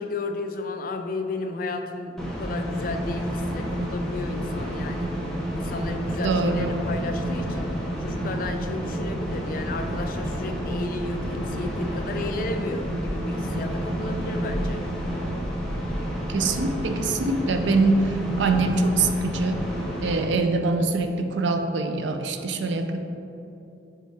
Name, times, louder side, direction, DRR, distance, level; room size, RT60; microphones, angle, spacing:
voice 1, 0.0-5.1 5.5-14.8, left 2 dB, 45° left, 6 dB, 0.4 m, -33 dB
sound 1, 2.2-20.2, equal, 5° left, 0.6 m, -29 dB
voice 2, 6.2-6.7 16.3-19.6 20.0-23.0, right 3 dB, 70° right, 6 dB, 0.4 m, -24 dB
4.5 x 4.5 x 4.7 m, 2.8 s
head